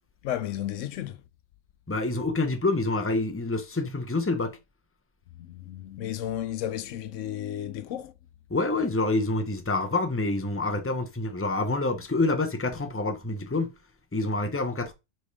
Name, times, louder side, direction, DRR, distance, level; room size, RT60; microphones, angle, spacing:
voice 1, 0.2-1.2 5.4-8.1, left 11 dB, 75° left, 0.9 m, -33 dB
voice 2, 1.9-4.6 8.5-13.8 14.1-14.9, left 2 dB, 10° left, 0.8 m, -27 dB
5.3 x 4.2 x 4.8 m
omnidirectional pair, 1.3 m